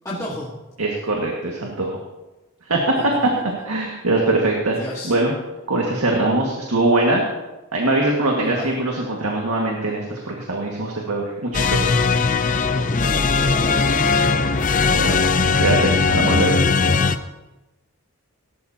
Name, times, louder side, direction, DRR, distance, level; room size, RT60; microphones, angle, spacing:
voice 1, 0.0-0.5 2.9-3.1 3.3-3.4 4.7-5.1 8.4-8.8 12.9-15.4 16.9-17.1, left 1 dB, 15° left, -7 dB, 1.7 m, -33 dB
voice 2, 0.8-1.9 2.6-3.1 3.6-4.8 5.0-5.3 5.7-7.2 7.7-11.9 14.9-15.2 15.6-16.6, right 2 dB, 85° right, -1 dB, 1.9 m, -22 dB
sound 1, 11.5-17.2, left 4 dB, 35° left, 0.5 m, -19 dB
18.5 x 12.5 x 2.9 m, 1.1 s
head